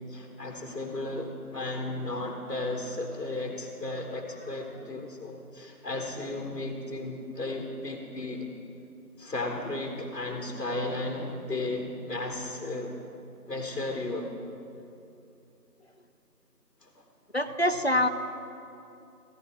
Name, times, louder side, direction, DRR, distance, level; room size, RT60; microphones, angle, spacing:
voice 1, 0.0-8.5 9.2-13.0 13.5-14.3 16.8-17.0, left 2 dB, 75° left, 2 dB, 1.6 m, -34 dB
voice 2, 17.3-18.1, left 1 dB, 45° left, 8 dB, 0.5 m, -25 dB
15.5 x 14.5 x 3.2 m, 2.7 s
figure-of-eight pair, 175°, 47 cm